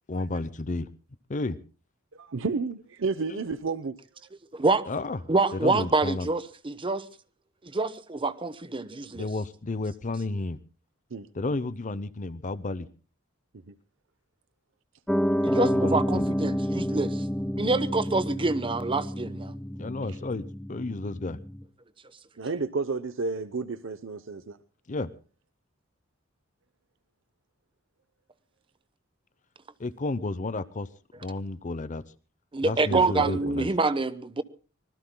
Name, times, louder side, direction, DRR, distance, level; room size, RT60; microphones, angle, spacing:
voice 1, 0.1-0.9 1.3-1.6 3.3-3.4 4.9-5.2 5.5-6.3 9.1-10.6 11.3-12.9 15.5-16.3 19.8-21.4 24.9-25.1 29.8-30.9 31.2-32.0 32.6-33.7, left 2 dB, 40° left, 0.7 m, -32 dB
voice 2, 2.1-4.0 11.1-11.3 13.7-13.8 20.1-20.2 22.4-24.6 32.8-33.5, right 4 dB, 65° right, 0.8 m, -31 dB
voice 3, 4.5-4.9 5.3-7.1 7.6-9.3 15.4-17.2 17.6-19.5 32.5-34.4, right 3 dB, 25° right, 0.9 m, -26 dB
Piano, 15.1-21.6, equal, 5° left, 0.7 m, -29 dB
25.0 x 20.5 x 2.2 m
head